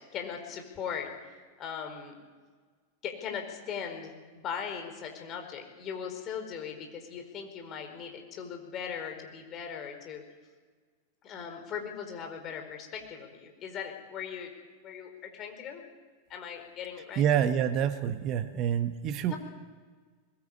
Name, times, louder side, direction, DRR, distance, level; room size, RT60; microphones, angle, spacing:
voice 1, 0.1-1.1 1.6-2.1 3.0-10.2 11.2-14.5 14.8-15.8 16.3-17.2 19.3-19.4, left 7 dB, 30° left, 3 dB, 4.6 m, -39 dB
voice 2, 17.2-19.3, right 9 dB, 35° right, 9 dB, 1.4 m, -27 dB
21.5 x 21.0 x 8.7 m, 1.5 s
figure-of-eight pair, 90°, 0 cm